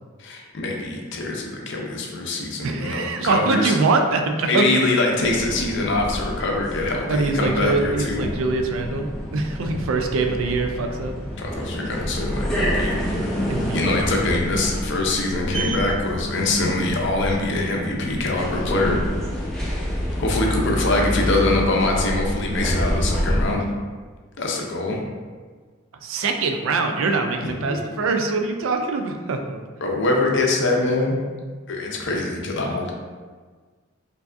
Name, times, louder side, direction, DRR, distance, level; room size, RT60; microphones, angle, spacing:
voice 1, 0.2-3.8 4.5-8.3 11.4-13.0 13.7-19.0 20.2-23.6 24.4-25.0 27.4-27.8 29.8-31.1 31.7-32.9, left 2 dB, 55° left, 0 dB, 0.6 m, -23 dB
voice 2, 2.6-4.6 7.1-11.1 13.5-13.9 26.0-29.6, right 3 dB, 65° right, 4 dB, 0.4 m, -23 dB
sound 1, 5.2-23.5, equal, 5° left, 0.5 m, -28 dB
4.6 x 2.6 x 2.5 m, 1.5 s
head